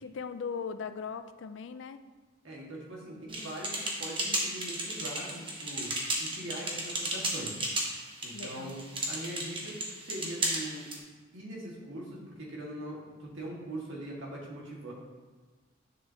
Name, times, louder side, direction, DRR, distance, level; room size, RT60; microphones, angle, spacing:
voice 1, 0.0-2.0 8.3-8.8, left 6 dB, 65° left, 10 dB, 0.4 m, -39 dB
voice 2, 2.4-5.9 6.2-7.6 8.2-8.8 9.1-9.8 10.0-10.9 11.3-14.9, right 1 dB, 70° right, -3 dB, 1.9 m, -41 dB
sound 1, 3.3-11.0, right 1 dB, 25° right, 1.0 m, -34 dB
9.1 x 6.8 x 2.8 m, 1.4 s
head